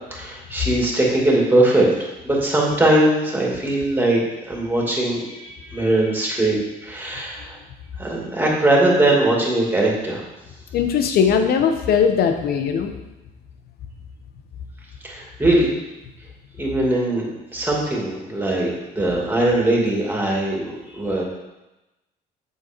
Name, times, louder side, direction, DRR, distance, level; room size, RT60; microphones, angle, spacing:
voice 1, 0.1-4.2 4.5-7.6 8.0-10.2 15.0-15.7 16.6-21.2, right 1 dB, 10° right, -2 dB, 2.6 m, -20 dB
voice 2, 10.7-12.9, left 7 dB, 65° left, 6 dB, 1.1 m, -19 dB
7.9 x 6.8 x 4.6 m, 1.0 s
cardioid pair, 110°, 17 cm